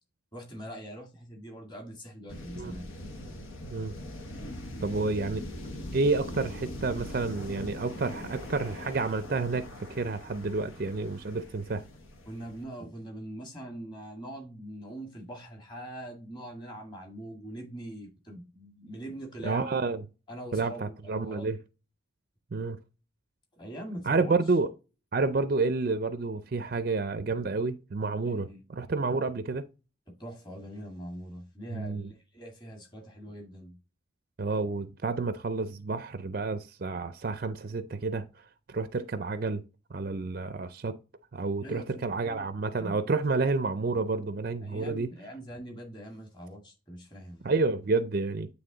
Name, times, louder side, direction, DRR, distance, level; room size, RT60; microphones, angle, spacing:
voice 1, 0.3-2.9 12.3-19.7 20.3-21.5 23.6-24.4 28.2-28.6 30.1-33.8 41.6-42.5 42.7-43.0 44.6-47.4, right 1 dB, 20° left, 1.8 m, -42 dB
sound 1, 2.3-12.6, left 1 dB, 85° left, 1.3 m, -41 dB
voice 2, 4.8-5.4 5.9-11.8 19.4-20.0 20.5-21.6 22.5-22.8 24.0-24.7 25.1-29.7 31.7-32.1 34.4-39.6 39.9-41.0 41.3-45.1 47.4-48.5, right 3 dB, 45° right, 0.4 m, -30 dB
9.0 x 3.4 x 3.8 m
head